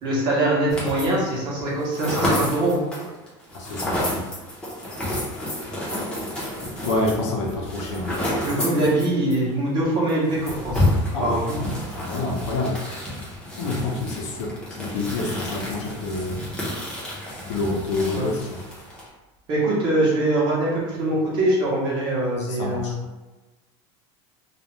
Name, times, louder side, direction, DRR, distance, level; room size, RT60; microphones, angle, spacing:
voice 1, 0.0-2.8 8.4-10.9 11.2-11.5 18.1-18.3 19.5-23.0, right 1 dB, 30° right, -5 dB, 0.8 m, -23 dB
sound 1, 0.7-1.3 1.6-9.4 9.7-9.8 10.1-19.1, left 1 dB, 5° left, 0.6 m, -29 dB
voice 2, 3.5-4.2 6.8-8.3 11.1-11.7 12.0-12.8 13.6-16.4 17.5-18.4 22.6-22.9, left 2 dB, 80° left, 0 dB, 0.7 m, -27 dB
2.4 x 2.1 x 3.0 m, 1.1 s
cardioid pair, 175°, 15 cm